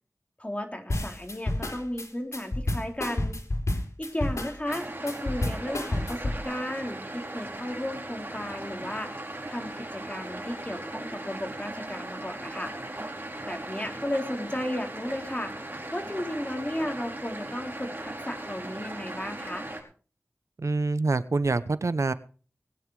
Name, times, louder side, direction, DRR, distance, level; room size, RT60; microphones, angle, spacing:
voice 1, 0.4-3.4 4.0-9.2 9.5-12.7 13.4-15.5 15.9-19.7, left 1 dB, 25° left, 3 dB, 3.7 m, -34 dB
sound 1, 0.9-6.4, left 1 dB, 85° left, 3.3 m, -30 dB
sound 2, 4.6-19.8, right 1 dB, 40° right, 5.0 m, -38 dB
voice 2, 20.6-22.1, right 3 dB, 90° right, 14 dB, 0.8 m, -26 dB
20.0 x 9.5 x 4.9 m, 0.39 s
wide cardioid pair, 50°, 5 cm